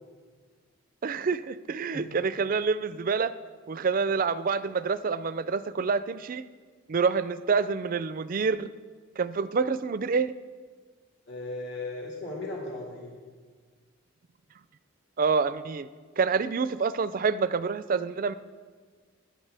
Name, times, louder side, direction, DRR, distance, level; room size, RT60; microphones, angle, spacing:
voice 1, 1.0-3.3 3.7-6.4 6.9-8.7 9.2-10.3 15.2-15.9 16.2-18.3, right 5 dB, 40° right, 14 dB, 0.3 m, -27 dB
voice 2, 11.3-13.2, left 2 dB, 55° left, -3 dB, 2.0 m, -36 dB
19.5 x 10.0 x 3.4 m, 1.5 s
head